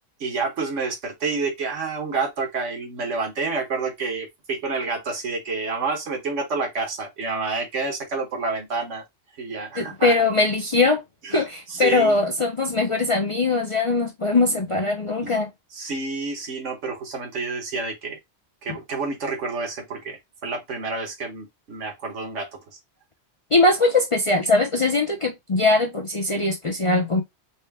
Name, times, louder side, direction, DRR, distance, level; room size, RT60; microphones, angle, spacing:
voice 1, 0.2-9.0 9.4-10.1 11.2-11.4 11.7-12.2 15.2-15.3 15.7-18.2 18.6-22.5, right 4 dB, 75° right, 1.4 m, -29 dB
voice 2, 9.8-11.0 11.3-15.5 23.5-27.2, left 3 dB, 40° left, 0.5 m, -21 dB
4.3 x 2.2 x 3.4 m
omnidirectional pair, 1.3 m